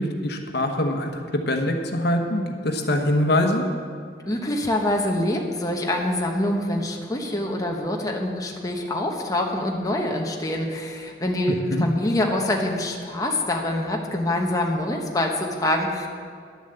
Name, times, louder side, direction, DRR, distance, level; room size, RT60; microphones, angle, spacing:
voice 1, 0.0-3.6 11.7-11.8, left 1 dB, 65° left, 4 dB, 1.1 m, -23 dB
voice 2, 4.3-16.1, left 1 dB, 20° left, 0 dB, 1.0 m, -25 dB
11.0 x 7.1 x 7.8 m, 2.2 s
head